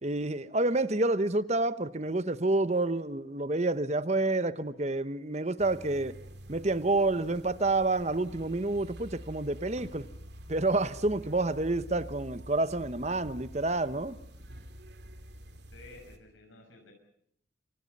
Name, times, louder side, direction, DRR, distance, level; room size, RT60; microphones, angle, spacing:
voice 1, 0.0-6.1 6.5-10.0 10.5-14.2, right 2 dB, 35° right, 1.0 m, -28 dB
sound 1, 5.6-16.2, equal, 60° right, 2.9 m, -47 dB
voice 2, 15.7-16.9, left 2 dB, 85° left, 6.5 m, -52 dB
27.5 x 25.5 x 5.5 m
head